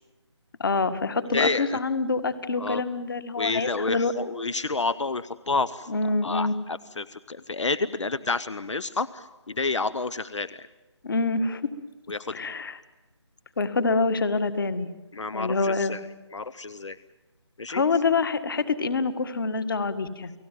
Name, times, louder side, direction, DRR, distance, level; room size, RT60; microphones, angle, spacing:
voice 1, 0.6-4.1 5.9-6.6 11.0-11.6 12.3-12.8 13.6-14.9 15.3-16.0 17.7-20.3, left 4 dB, 45° left, 10 dB, 1.9 m, -26 dB
voice 2, 1.3-1.8 2.6-2.8 3.4-5.9 6.2-10.7 12.1-12.4 15.1-16.0 16.3-17.0 17.6-17.8, left 3 dB, 75° left, 16 dB, 0.9 m, -29 dB
30.0 x 18.0 x 9.2 m, 1.1 s
figure-of-eight pair, 165°, 15 cm